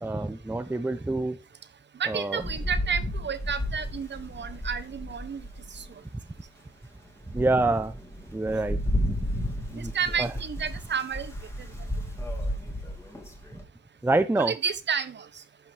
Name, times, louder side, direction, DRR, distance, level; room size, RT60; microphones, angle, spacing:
voice 1, 0.0-1.4 2.1-2.4 7.3-8.0 8.3-8.8 9.7-9.9 10.2-10.3 14.0-14.5, right 2 dB, 5° right, 0.6 m, -26 dB
voice 2, 1.9-6.0 9.7-11.3 11.6-11.7 14.4-15.4, right 6 dB, 35° right, 1.0 m, -31 dB
Rain, 2.4-5.9 6.5-6.6 7.0-13.6, equal, 10° left, 2.4 m, -33 dB
10.5 x 5.9 x 3.4 m
cardioid pair, 90°, 30 cm